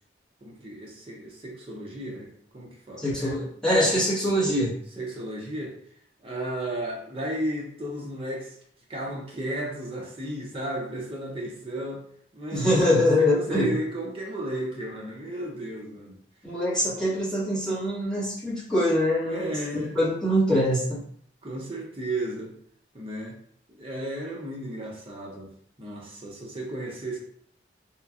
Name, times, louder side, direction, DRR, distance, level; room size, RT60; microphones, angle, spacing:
voice 1, 0.4-3.4 5.0-5.8 6.2-8.6 8.9-12.0 12.3-12.7 13.2-16.2 16.8-17.0 19.3-20.0 21.4-22.5 22.9-23.4 23.8-27.2, right 1 dB, 30° right, -2 dB, 0.6 m, -34 dB
voice 2, 3.0-4.8 12.5-13.8 16.4-21.0, left 1 dB, 5° left, -11 dB, 1.2 m, -24 dB
2.9 x 2.4 x 2.4 m, 0.63 s
head